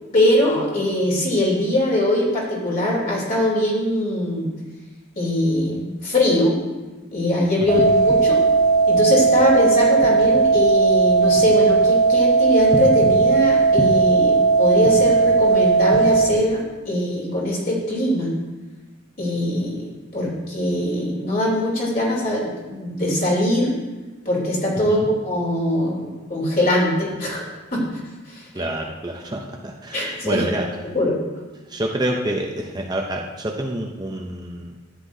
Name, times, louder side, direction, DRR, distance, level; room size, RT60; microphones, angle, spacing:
voice 1, 0.1-4.5 5.2-6.6 7.1-8.4 8.9-18.3 19.2-23.7 24.2-28.0 28.3-28.6 29.9-30.4 30.9-31.2, left 1 dB, 45° left, -4 dB, 3.1 m, -22 dB
sound 1, 7.7-16.3, right 4 dB, 15° left, 1.2 m, -17 dB
voice 2, 28.5-30.7 31.7-34.7, right 1 dB, 20° right, 0 dB, 0.6 m, -27 dB
13.0 x 9.5 x 2.7 m, 1.2 s
head